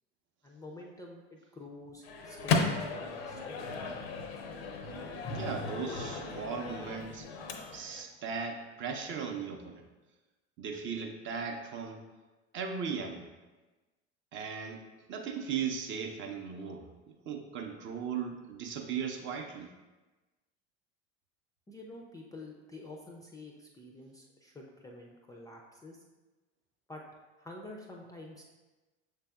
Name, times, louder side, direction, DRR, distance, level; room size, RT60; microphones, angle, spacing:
voice 1, 0.4-2.6 2.9-3.6 21.7-26.0 26.9-27.0 27.4-28.4, left 2 dB, 10° left, 0 dB, 0.4 m, -48 dB
Microwave oven, 2.0-8.0, left 4 dB, 60° left, 0.6 m, -35 dB
voice 2, 5.3-7.3 7.7-9.8 10.6-12.1 12.5-13.3 14.3-14.8 15.1-19.7, right 6 dB, 35° right, 3 dB, 0.6 m, -37 dB
6.6 x 3.3 x 2.3 m, 1.2 s
figure-of-eight pair, 65°, 35 cm